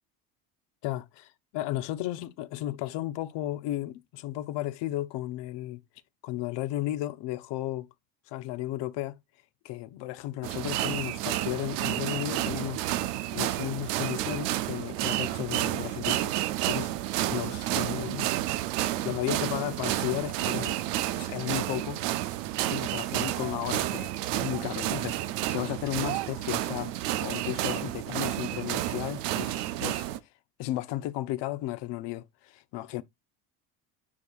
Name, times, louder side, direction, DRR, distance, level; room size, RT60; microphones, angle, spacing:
voice 1, 0.8-5.8 6.2-7.9 8.3-9.2 9.6-12.8 13.3-16.9 17.3-18.3 19.0-20.8 21.2-22.0 22.7-26.9 27.2-30.1 30.6-33.0, left 15 dB, 60° left, 0.9 m, -34 dB
sound 1, 10.4-30.2, right 14 dB, 85° right, 0.7 m, -30 dB
9.8 x 4.7 x 2.4 m
supercardioid pair, 90°, 47 cm